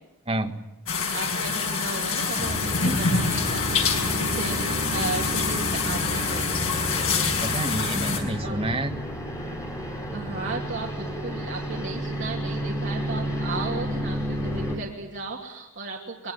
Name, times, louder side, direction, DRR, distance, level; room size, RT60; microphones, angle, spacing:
voice 1, 0.3-0.6 2.8-3.0 7.4-8.9, right 1 dB, 25° right, 5 dB, 1.6 m, -29 dB
sound 1, 0.9-8.2, left 5 dB, 70° left, 5.5 m, -26 dB
voice 2, 1.1-6.5 8.4-8.6 10.1-16.3, right 3 dB, 55° right, -1 dB, 2.9 m, -35 dB
sound 2, 2.4-14.8, equal, 15° left, 4.6 m, -31 dB
23.0 x 21.0 x 9.2 m, 0.98 s
head